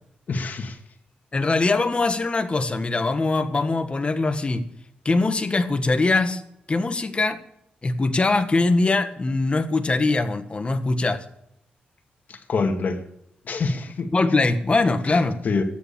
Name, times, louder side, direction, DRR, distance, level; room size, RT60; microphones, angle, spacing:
voice 1, 0.3-0.8 12.3-13.0 13.4-14.1 15.1-15.6, left 4 dB, 55° left, 2.2 m, -26 dB
voice 2, 1.3-4.7 5.1-6.4 6.7-7.4 7.8-11.2 14.1-15.4, left 3 dB, 35° left, 1.6 m, -22 dB
13.5 x 9.9 x 7.2 m
cardioid pair, 70°, 3 cm